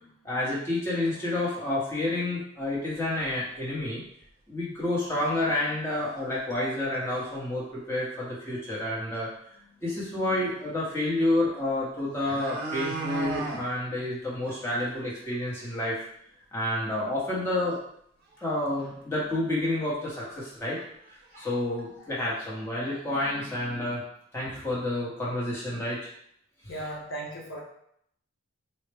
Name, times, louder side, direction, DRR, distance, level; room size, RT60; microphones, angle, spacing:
voice 1, 0.0-4.0 4.5-9.3 9.8-15.9 16.5-17.8 18.4-20.8 21.3-24.0 24.3-26.1, left 1 dB, 10° left, -7 dB, 0.8 m, -29 dB
sound 1, 3.2-3.3 3.8-3.9 4.2-4.3 5.3-5.4 5.9-6.2 6.5-6.6 6.9-7.4 8.8-8.9 9.1-9.2 11.5-11.6 12.0-13.6 14.0-14.1 14.5-14.6 15.0-15.1 15.4-15.5 18.3-18.4 18.8-18.9 19.6-19.7 20.2-20.4 20.6-21.4 21.8-21.9, right 3 dB, 45° right, 0.7 m, -36 dB
voice 2, 26.7-27.6, right 1 dB, 70° left, -3 dB, 0.9 m, -37 dB
4.1 x 2.1 x 3.3 m, 0.71 s
head